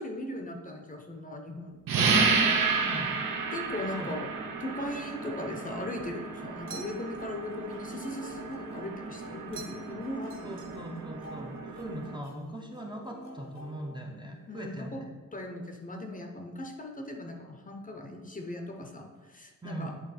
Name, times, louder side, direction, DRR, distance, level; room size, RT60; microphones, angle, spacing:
voice 1, 0.0-2.2 3.5-4.3 4.6-10.8 14.5-15.0 15.3-20.0, left 1 dB, 25° left, 3 dB, 0.7 m, -38 dB
sound 1, 1.9-12.2, right 4 dB, 85° right, 0.9 m, -31 dB
voice 2, 2.8-3.2 4.0-4.2 10.4-15.1 19.6-20.0, right 1 dB, 15° right, 0 dB, 0.6 m, -40 dB
sound 2, 6.7-14.6, left 1 dB, 60° left, 1.0 m, -50 dB
sound 3, 6.7-7.3 9.5-10.0 10.3-11.1, right 7 dB, 40° right, 1.0 m, -47 dB
8.7 x 3.6 x 4.1 m, 1.3 s
wide cardioid pair, 155°, 33 cm